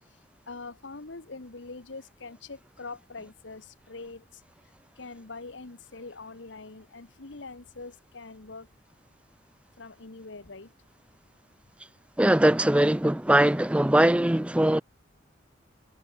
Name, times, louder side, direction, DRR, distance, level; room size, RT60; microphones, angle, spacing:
voice 1, 0.5-4.2 5.0-8.7 9.8-10.7, left 3 dB, 75° left, 1.3 m, -43 dB
voice 2, 12.2-14.8, right 1 dB, 5° right, 0.4 m, -21 dB
head